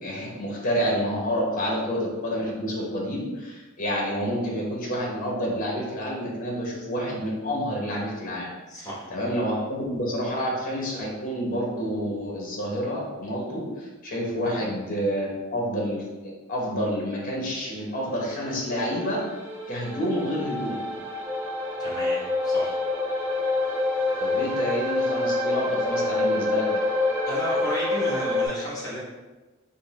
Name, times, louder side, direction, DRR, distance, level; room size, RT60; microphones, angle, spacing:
voice 1, 0.0-8.5 8.8-16.1 16.5-19.2 19.7-20.8 24.2-26.7, equal, 40° left, -3 dB, 0.9 m, -28 dB
voice 2, 8.7-9.1 14.4-14.6 21.8-22.8 27.3-29.0, equal, 20° left, -6 dB, 1.1 m, -33 dB
sound 1, 18.1-28.5, left 2 dB, 10° right, 0.9 m, -27 dB
3.9 x 2.1 x 3.6 m, 1.2 s
head